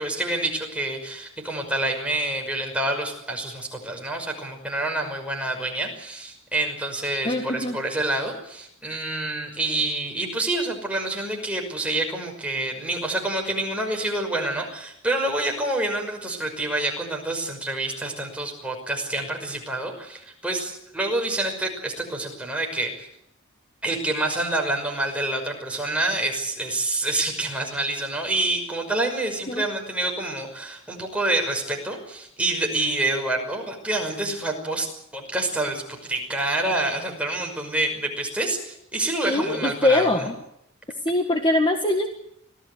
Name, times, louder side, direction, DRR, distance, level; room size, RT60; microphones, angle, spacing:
voice 1, 0.0-23.1 23.8-40.3, right 2 dB, 5° right, 1 dB, 5.7 m, -27 dB
voice 2, 7.2-7.8 29.5-29.7 39.3-40.3 41.0-42.1, left 2 dB, 25° left, 4 dB, 1.7 m, -22 dB
25.5 x 17.5 x 8.1 m, 0.75 s
head